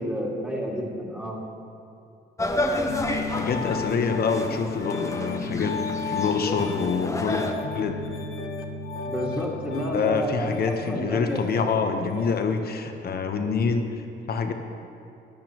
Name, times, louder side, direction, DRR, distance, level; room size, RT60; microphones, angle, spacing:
voice 1, 0.0-1.4 9.0-11.7, equal, 5° right, -4 dB, 2.2 m, -30 dB
sound 1, 2.4-7.5, left 1 dB, 15° left, 1.0 m, -31 dB
Piano, 2.9-12.6, left 4 dB, 85° left, 0.9 m, -34 dB
voice 2, 3.3-5.8 6.1-7.4 7.7-8.0 9.7-14.0 14.3-14.5, left 5 dB, 50° left, 6 dB, 1.0 m, -26 dB
15.5 x 10.5 x 3.0 m, 2.6 s
cardioid pair, 90°, 20 cm